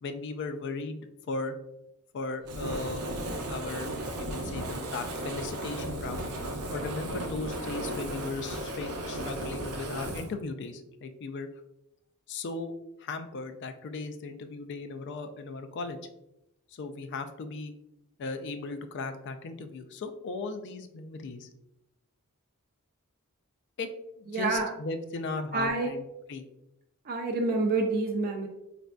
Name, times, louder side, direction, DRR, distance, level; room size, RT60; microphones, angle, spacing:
voice 1, 0.0-1.5 2.1-3.0 3.5-3.9 4.1-6.3 6.7-11.5 12.3-12.7 13.0-16.0 16.7-17.7 18.2-21.5 23.8-23.9 24.2-26.4, left 3 dB, 55° left, 8 dB, 0.3 m, -37 dB
Fire, 2.4-10.3, right 1 dB, 85° right, 0.6 m, -35 dB
voice 2, 24.3-24.7 25.5-25.9 27.1-28.5, right 3 dB, 40° right, 2 dB, 0.4 m, -28 dB
4.1 x 2.5 x 2.2 m, 0.87 s
head